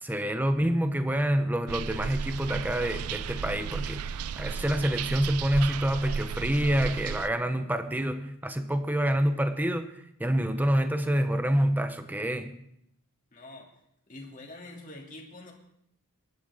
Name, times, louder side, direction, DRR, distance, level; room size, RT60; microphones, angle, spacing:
voice 1, 0.0-9.9 10.2-12.6, equal, 10° right, 8 dB, 0.9 m, -27 dB
sound 1, 1.7-7.3, right 7 dB, 80° right, 0.4 m, -34 dB
voice 2, 13.3-13.7 14.1-15.5, left 2 dB, 35° left, 0 dB, 2.7 m, -45 dB
22.5 x 11.5 x 3.6 m, 0.74 s
head